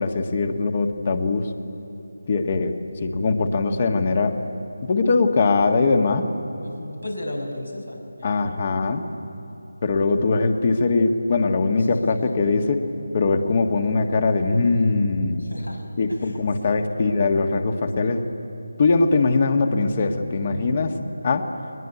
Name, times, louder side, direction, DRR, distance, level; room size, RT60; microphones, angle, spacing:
voice 1, 0.0-1.5 2.3-2.7 3.0-4.4 4.8-6.3 8.2-9.0 9.8-12.9 13.1-15.4 16.0-18.3 18.8-21.0 21.2-21.5, left 3 dB, 35° left, 6 dB, 1.6 m, -21 dB
voice 2, 6.6-8.5 11.8-12.1 15.4-15.8 16.1-17.4, left 1 dB, 85° left, 1 dB, 5.8 m, -36 dB
22.0 x 21.0 x 9.5 m, 2.8 s
figure-of-eight pair, 160°, 0 cm